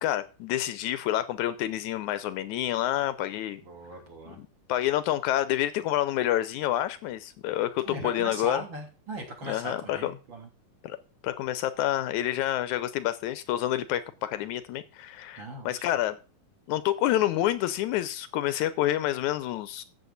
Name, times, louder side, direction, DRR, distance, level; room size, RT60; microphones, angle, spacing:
voice 1, 0.0-3.6 4.4-8.6 9.5-10.1 10.8-11.0 11.2-16.2 16.7-19.8, left 13 dB, 80° left, 14 dB, 2.0 m, -28 dB
voice 2, 3.6-4.4 7.8-10.5 15.4-15.7, right 1 dB, 40° right, 0 dB, 3.6 m, -39 dB
13.5 x 7.8 x 4.0 m, 0.33 s
omnidirectional pair, 3.5 m